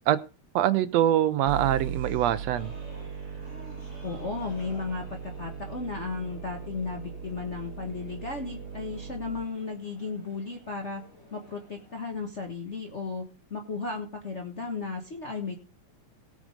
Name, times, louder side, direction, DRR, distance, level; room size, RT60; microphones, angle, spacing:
voice 1, 0.5-2.7, right 12 dB, 75° right, 1.6 m, -24 dB
sound 1, 1.5-9.5, right 6 dB, 40° right, 2.6 m, -38 dB
sound 2, 2.5-12.0, left 1 dB, 20° left, 6.8 m, -54 dB
voice 2, 4.0-11.0 11.3-15.6, left 4 dB, 80° left, 0.6 m, -35 dB
17.5 x 6.3 x 5.1 m
omnidirectional pair, 3.6 m